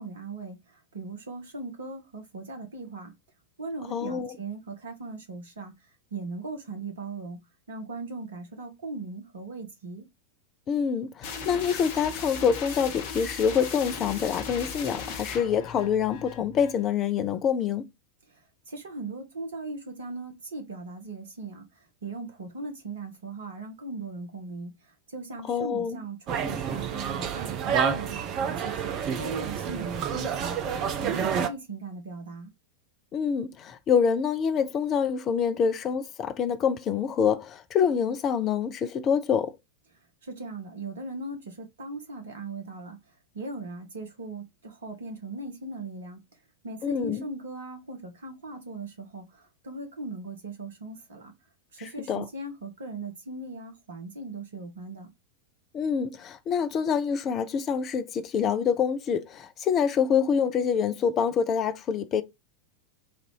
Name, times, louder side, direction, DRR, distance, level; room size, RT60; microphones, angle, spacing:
voice 1, 0.0-3.1 3.6-7.4 7.7-10.1 18.3-32.5 40.2-43.0 43.3-46.2 46.6-51.3 51.7-55.1, right 3 dB, 65° right, 1.3 m, -39 dB
voice 2, 3.9-4.4 10.7-17.9 25.5-26.0 33.1-39.6 46.8-47.2 52.1-52.2 55.7-62.2, left 7 dB, 30° left, 0.6 m, -26 dB
sound 1, 11.2-16.8, left 5 dB, 50° left, 0.9 m, -37 dB
sound 2, 26.3-31.5, right 7 dB, 35° right, 0.7 m, -29 dB
4.1 x 2.6 x 4.7 m
figure-of-eight pair, 90°, 0 cm